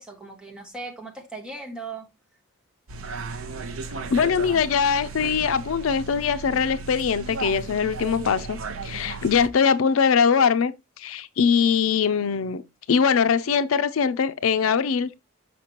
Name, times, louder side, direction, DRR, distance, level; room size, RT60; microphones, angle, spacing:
voice 1, 0.0-2.1, right 3 dB, 5° right, 1.4 m, -38 dB
sound 1, 2.9-9.5, right 4 dB, 85° right, 0.7 m, -35 dB
voice 2, 4.1-8.6 8.8-12.6 12.9-15.2, left 6 dB, 80° left, 0.5 m, -22 dB
6.0 x 5.6 x 2.9 m
head